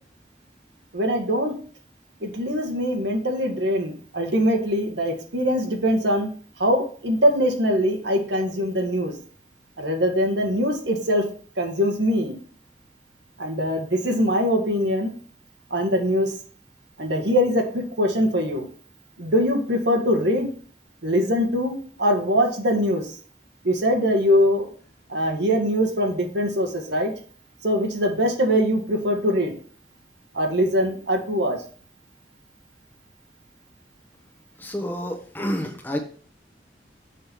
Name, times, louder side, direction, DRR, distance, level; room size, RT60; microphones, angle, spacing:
voice 1, 0.9-1.5 2.2-6.3 6.6-9.1 9.8-11.2 11.6-12.4 13.4-15.1 15.7-16.3 17.0-18.7 19.2-20.5 21.0-23.0 23.6-24.7 25.1-27.1 27.6-29.5 30.3-31.6, equal, 80° right, 3 dB, 1.6 m, -22 dB
voice 2, 34.6-36.0, equal, 10° left, 3 dB, 1.1 m, -29 dB
6.7 x 5.3 x 4.4 m, 0.43 s
head